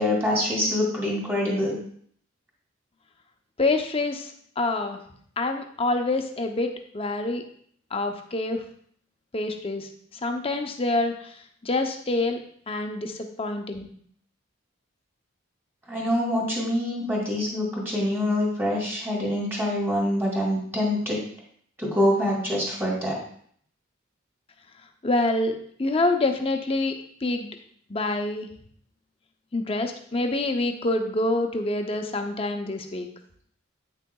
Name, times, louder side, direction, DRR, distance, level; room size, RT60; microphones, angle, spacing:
voice 1, 0.0-1.8 15.9-21.2 21.8-23.2, left 1 dB, 10° right, -4 dB, 2.3 m, -25 dB
voice 2, 3.6-5.0 5.4-7.4 7.9-8.6 9.3-9.9 10.2-11.1 11.6-12.4 12.7-13.9 25.0-26.9 27.2-27.5 27.9-28.5 29.5-33.1, left 2 dB, 30° left, 5 dB, 0.6 m, -26 dB
8.9 x 6.4 x 2.3 m, 0.62 s
head